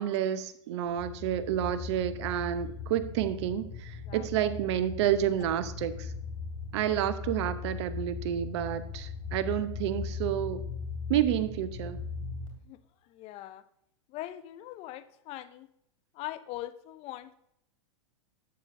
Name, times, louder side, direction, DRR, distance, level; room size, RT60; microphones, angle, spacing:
voice 1, 0.0-6.1 6.7-10.6 11.1-12.0, right 11 dB, 60° right, 13 dB, 0.8 m, -30 dB
sound 1, 0.8-12.5, left 5 dB, 90° left, 3.2 m, -39 dB
voice 2, 13.0-13.6 14.1-15.7 16.1-17.3, left 15 dB, 40° left, 13 dB, 0.6 m, -41 dB
11.5 x 8.0 x 2.6 m, 0.77 s
hypercardioid pair, 105°, 17 cm